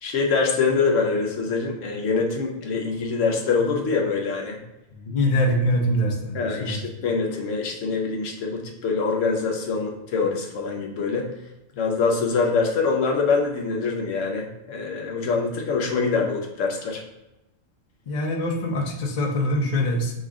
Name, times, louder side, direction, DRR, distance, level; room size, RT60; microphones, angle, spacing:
voice 1, 0.0-4.6 6.3-11.3 11.8-17.0, left 4 dB, 75° left, 1 dB, 1.0 m, -24 dB
voice 2, 4.9-6.8 18.1-20.1, left 1 dB, 40° left, 0 dB, 0.7 m, -24 dB
5.1 x 2.4 x 3.6 m, 0.95 s
omnidirectional pair, 1.4 m